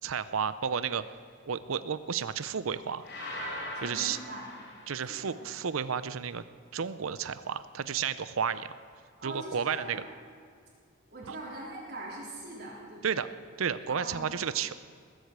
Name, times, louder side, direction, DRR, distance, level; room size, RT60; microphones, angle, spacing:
voice 1, 0.0-1.0 1.4-3.0 3.8-4.2 4.9-6.4 6.7-8.7 9.2-10.0 11.2-11.4 13.0-13.3 13.6-14.8, right 7 dB, 80° right, 14 dB, 0.6 m, -32 dB
sound 1, 3.0-5.3, left 1 dB, 50° left, 4.0 m, -40 dB
voice 2, 3.7-4.5 5.1-5.6 9.2-10.0 11.1-13.2 13.9-14.3, right 1 dB, 50° right, -5 dB, 3.8 m, -42 dB
20.0 x 8.1 x 8.2 m, 2.2 s
head